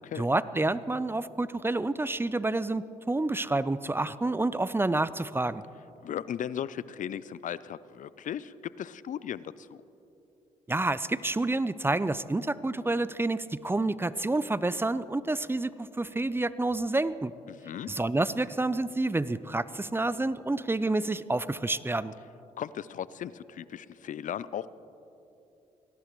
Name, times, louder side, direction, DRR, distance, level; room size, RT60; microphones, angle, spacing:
voice 1, 0.2-5.6 10.7-17.3 17.9-22.1, right 2 dB, 15° right, 16 dB, 0.5 m, -29 dB
voice 2, 6.0-9.8 17.5-17.9 22.6-24.7, left 9 dB, 60° left, 17 dB, 0.5 m, -37 dB
21.5 x 17.0 x 3.1 m, 2.8 s
supercardioid pair, 55°, 15 cm